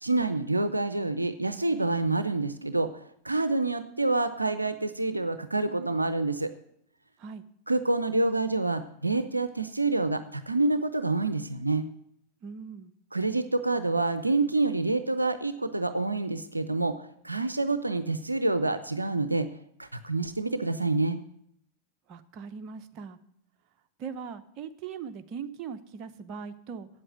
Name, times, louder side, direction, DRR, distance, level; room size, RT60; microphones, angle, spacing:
voice 1, 0.0-6.5 7.7-11.9 13.1-17.0 17.2-19.5 19.8-21.2, right 2 dB, 90° right, 11 dB, 0.6 m, -27 dB
voice 2, 12.4-12.9 22.1-23.2 24.0-26.9, right 6 dB, 40° right, 8 dB, 0.9 m, -40 dB
8.8 x 7.8 x 9.0 m, 0.73 s
figure-of-eight pair, 90°, 0 cm